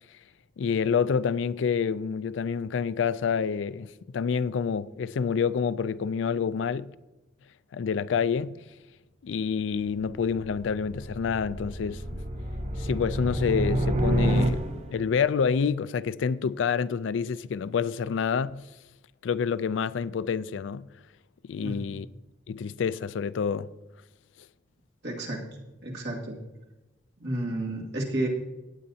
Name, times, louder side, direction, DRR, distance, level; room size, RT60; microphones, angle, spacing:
voice 1, 0.6-6.9 7.7-8.6 9.2-12.0 12.8-14.6 14.9-18.6 19.2-20.9 21.4-22.1 22.5-23.7, left 6 dB, 75° left, 0.4 m, -28 dB
sound 1, 9.8-15.1, right 1 dB, 35° right, 0.8 m, -29 dB
voice 2, 21.6-22.0 25.0-25.4 25.8-26.4 27.2-28.3, right 1 dB, 60° right, 2.2 m, -31 dB
18.0 x 8.6 x 2.8 m
head